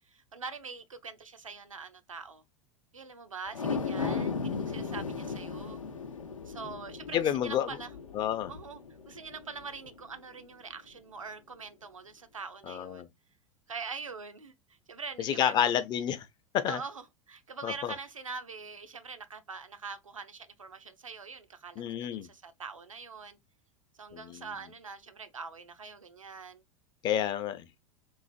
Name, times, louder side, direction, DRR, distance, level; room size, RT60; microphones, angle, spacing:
voice 1, 0.0-2.4 2.9-5.8 6.5-7.9 8.5-13.1 13.7-14.5 14.9-15.6 16.7-23.4 24.0-26.6, right 5 dB, 80° right, 0.5 m, -43 dB
sound 1, 3.5-10.0 10.4-10.5, left 5 dB, 80° left, 0.5 m, -36 dB
voice 2, 4.8-5.1 7.1-7.7 8.1-8.5 12.7-13.1 15.2-16.2 16.5-16.8 17.6-17.9 21.8-22.3 24.1-24.5 27.0-27.7, left 10 dB, 25° left, 0.4 m, -30 dB
3.2 x 2.4 x 2.4 m
figure-of-eight pair, 85°, 17 cm